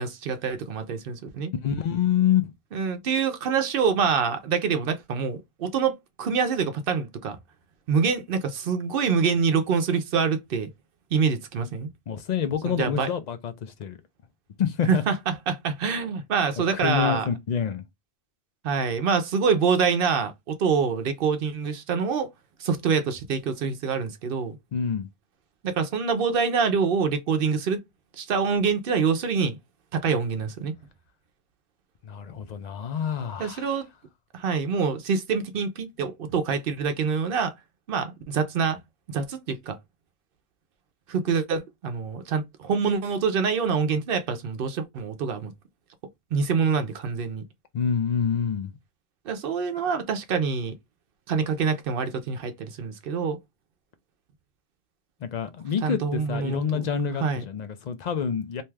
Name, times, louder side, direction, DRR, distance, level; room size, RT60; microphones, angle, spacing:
voice 1, 0.0-1.5 2.7-7.4 7.9-10.7 11.1-11.9 12.7-13.1 14.9-17.2 18.6-22.3 22.6-24.5 25.6-27.8 28.2-29.6 29.9-30.7 33.4-33.9 34.3-37.5 37.9-38.8 39.1-39.8 41.1-45.5 46.3-47.4 49.3-50.8 51.3-53.4 55.8-56.8 57.2-57.4, right 5 dB, 65° right, 0.7 m, -25 dB
voice 2, 1.6-2.5 12.1-14.0 14.6-15.0 16.7-17.9 24.7-25.1 32.0-33.8 47.7-48.7 55.2-58.6, left 8 dB, 55° left, 0.5 m, -27 dB
2.7 x 2.2 x 3.2 m
omnidirectional pair, 1.1 m